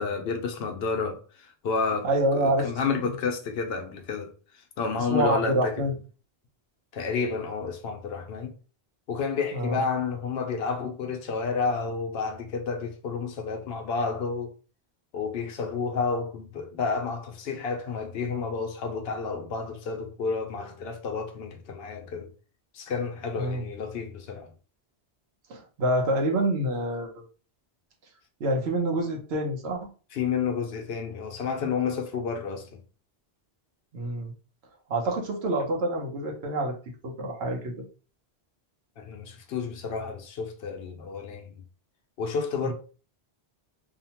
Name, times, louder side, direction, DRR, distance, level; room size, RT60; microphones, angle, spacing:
voice 1, 0.0-2.1 2.3-4.3 4.8-5.9 6.9-8.5 9.1-14.5 15.1-22.3 22.7-24.5 30.1-32.7 39.0-41.5 42.2-42.7, left 5 dB, 70° left, 0.8 m, -30 dB
voice 2, 2.0-2.7 3.0-3.1 5.0-5.9 9.5-9.8 23.4-23.6 25.5-27.1 28.4-29.8 33.9-34.3 34.9-36.7 37.0-37.8 42.6-42.7, right 1 dB, 80° right, 1.0 m, -27 dB
2.8 x 2.1 x 2.8 m
omnidirectional pair, 1.1 m